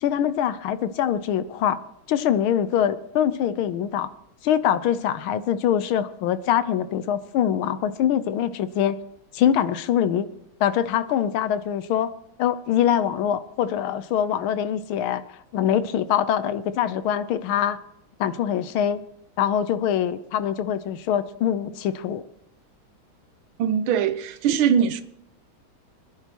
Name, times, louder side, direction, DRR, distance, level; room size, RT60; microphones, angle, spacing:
voice 1, 0.0-1.8 2.1-4.1 4.4-9.0 9.3-10.3 10.6-12.1 12.4-15.2 15.5-17.8 18.2-19.0 19.4-22.2, left 9 dB, 80° left, 1.6 m, -23 dB
voice 2, 23.6-25.0, right 8 dB, 80° right, 1.5 m, -21 dB
25.5 x 10.5 x 2.9 m
omnidirectional pair, 2.3 m